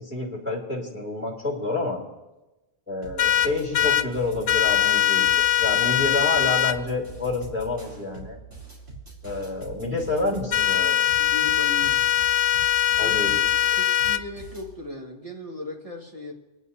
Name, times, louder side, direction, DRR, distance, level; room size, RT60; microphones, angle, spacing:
voice 1, 0.0-2.0 2.9-5.3 5.6-8.4 9.2-11.1 13.0-13.4, left 2 dB, 10° right, -4 dB, 2.8 m, -28 dB
sound 1, 3.0-14.7, right 4 dB, 70° right, 4.2 m, -43 dB
sound 2, 3.2-4.0 4.5-6.7 10.5-14.2, left 12 dB, 90° left, 1.0 m, -21 dB
voice 2, 11.2-12.1 13.0-13.2 13.8-16.3, left 2 dB, 30° right, -2 dB, 1.9 m, -37 dB
29.0 x 10.0 x 2.8 m, 1.0 s
omnidirectional pair, 1.3 m